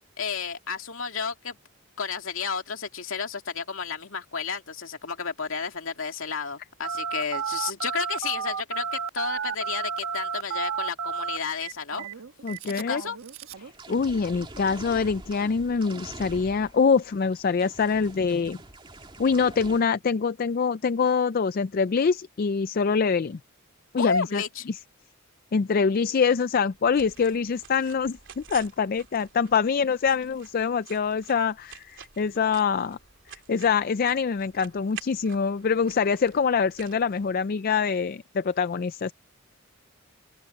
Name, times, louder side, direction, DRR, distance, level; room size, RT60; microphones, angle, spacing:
voice 1, 0.2-1.6 2.0-12.0 12.6-13.2 24.0-24.7, left 5 dB, 70° left, 2.5 m, -32 dB
Telephone, 6.8-13.7, right 6 dB, 80° right, 1.2 m, -32 dB
voice 2, 12.4-13.0 13.9-18.6 19.2-23.4 23.9-24.8 25.5-33.0 33.5-39.1, left 5 dB, 45° left, 0.4 m, -25 dB
sound 1, 13.6-19.8, right 2 dB, 25° right, 2.6 m, -44 dB
sound 2, 26.5-37.8, right 8 dB, 60° right, 3.4 m, -49 dB
open air
head